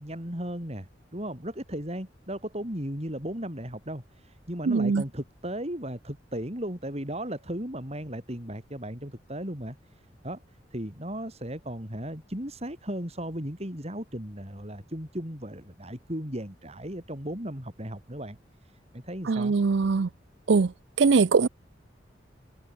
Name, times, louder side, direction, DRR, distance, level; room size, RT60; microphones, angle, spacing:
voice 1, 0.0-19.5, right 1 dB, 35° right, 7.7 m, -36 dB
voice 2, 4.7-5.0 19.3-20.1 20.5-20.7 21.0-21.5, right 4 dB, 75° right, 0.5 m, -21 dB
head